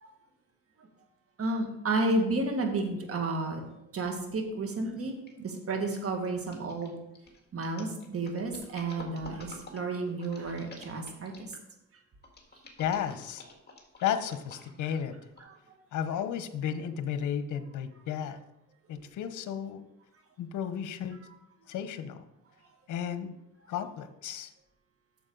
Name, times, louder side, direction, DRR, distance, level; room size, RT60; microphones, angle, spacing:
voice 1, 1.4-3.6 3.9-6.9 7.5-11.5 15.5-15.6, right 2 dB, 50° right, 3 dB, 1.8 m, -31 dB
sound 1, 5.3-5.5 5.9-11.7 12.2-14.9 15.4-15.5, left 3 dB, 35° left, 1.9 m, -49 dB
voice 2, 12.8-13.4 14.0-15.2 15.9-18.4 18.9-19.8 20.4-21.2 21.7-22.2 22.9-23.3 23.7-24.5, left 9 dB, 80° left, 10 dB, 0.9 m, -33 dB
8.7 x 6.9 x 3.9 m, 0.87 s
cardioid pair, 90°, 30 cm